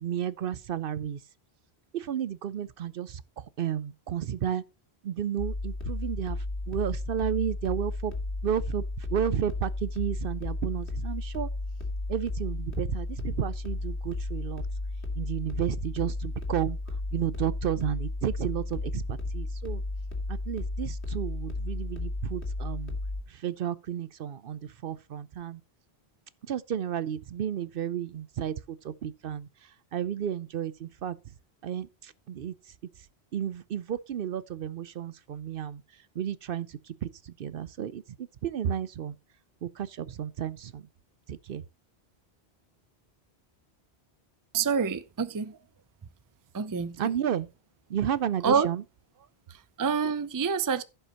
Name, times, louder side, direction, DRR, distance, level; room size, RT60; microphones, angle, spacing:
voice 1, 0.0-1.2 1.9-4.6 5.0-8.1 8.4-11.5 12.1-14.6 15.1-16.8 17.1-19.8 20.3-23.0 23.3-25.6 26.4-31.2 31.6-32.5 33.3-35.8 36.2-39.2 39.6-40.9 41.3-41.6 47.0-47.5 47.9-48.8, right 9 dB, 65° right, 0.7 m, -32 dB
sound 1, 5.4-23.2, left 2 dB, 90° left, 2.4 m, -33 dB
voice 2, 44.5-45.6 46.5-47.1 48.4-48.7 49.5-50.8, right 6 dB, 25° right, 0.4 m, -27 dB
15.5 x 5.6 x 2.9 m
omnidirectional pair, 1.1 m